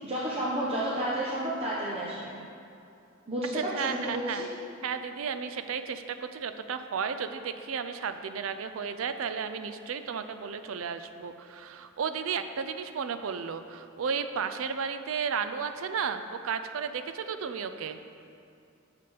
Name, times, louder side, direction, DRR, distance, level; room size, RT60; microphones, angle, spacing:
voice 1, 0.0-2.3 3.3-3.5 3.8-4.4, right 1 dB, 30° right, -7 dB, 0.9 m, -31 dB
voice 2, 3.5-4.4 4.8-18.0, right 6 dB, 75° right, 9 dB, 0.4 m, -33 dB
7.0 x 6.7 x 5.0 m, 2.6 s
head